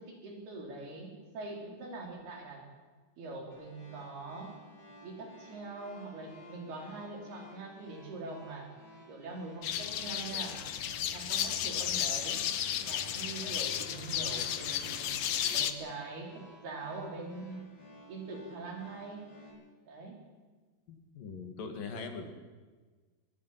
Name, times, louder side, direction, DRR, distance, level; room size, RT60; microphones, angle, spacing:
voice 1, 0.0-2.6 3.2-4.6 5.0-8.7 9.1-10.6 11.1-12.5 12.8-15.1 15.5-17.8 18.1-19.4 19.8-20.2, right 3 dB, 75° right, 0 dB, 6.1 m, -43 dB
sound 1, 3.5-19.5, equal, 40° left, 8.7 m, -55 dB
sound 2, 9.6-15.7, left 10 dB, 80° left, 1.5 m, -33 dB
voice 2, 20.9-22.3, left 4 dB, 60° left, 6 dB, 3.7 m, -41 dB
24.5 x 21.5 x 5.9 m, 1.4 s
omnidirectional pair, 4.6 m